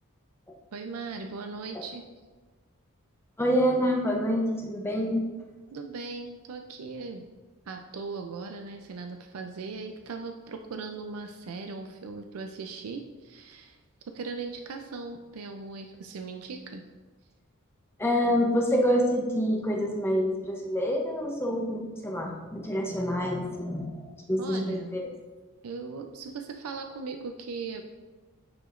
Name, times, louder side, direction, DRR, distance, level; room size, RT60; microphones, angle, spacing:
voice 1, 0.7-2.1 5.7-7.3 7.7-13.8 14.1-16.8 24.4-24.9 25.6-27.8, right 4 dB, 85° right, 5 dB, 0.4 m, -38 dB
voice 2, 3.4-5.2 18.0-24.0 24.3-25.0, equal, 10° left, 0 dB, 0.6 m, -27 dB
9.2 x 4.9 x 2.5 m, 1.3 s
head